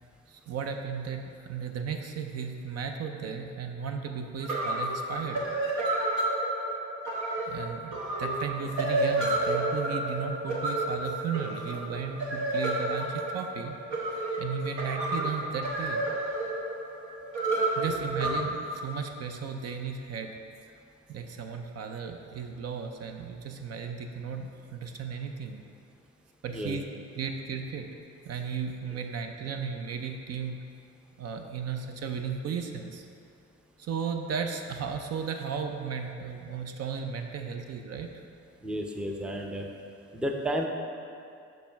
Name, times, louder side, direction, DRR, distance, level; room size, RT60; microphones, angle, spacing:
voice 1, 0.3-5.5 7.5-13.8 14.4-16.0 17.8-20.4 21.1-25.6 26.4-26.8 27.2-27.9 28.3-30.6 31.2-33.0 33.8-38.1, right 6 dB, 55° right, 5 dB, 0.5 m, -35 dB
sound 1, 4.1-4.2 4.4-18.3, right 2 dB, 75° right, 1.1 m, -30 dB
voice 2, 38.6-39.7 40.1-40.7, equal, 5° right, 2 dB, 0.5 m, -31 dB
6.6 x 3.1 x 5.6 m, 2.5 s
cardioid pair, 90°, 30 cm